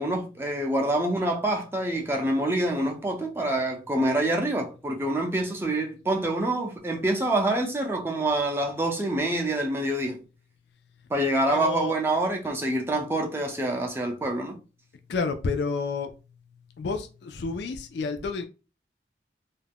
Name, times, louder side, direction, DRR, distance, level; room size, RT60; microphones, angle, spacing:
voice 1, 0.0-10.2 11.1-14.6, right 1 dB, 15° right, 0.4 m, -26 dB
voice 2, 11.5-11.9 15.1-16.1 16.8-18.4, left 4 dB, 70° left, 0.4 m, -30 dB
2.4 x 2.1 x 3.3 m
head